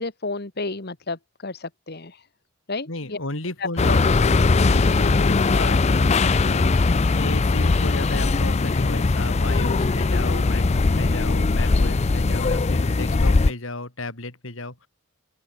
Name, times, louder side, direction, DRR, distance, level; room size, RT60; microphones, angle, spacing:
voice 1, 0.0-2.3 2.7-3.2 3.6-4.0, left 3 dB, 50° left, 1.7 m, -31 dB
voice 2, 2.9-4.1 4.6-6.8 7.1-14.9, left 2 dB, 65° left, 3.0 m, -33 dB
sound 1, 3.8-13.5, left 3 dB, 30° left, 0.5 m, -20 dB
open air
head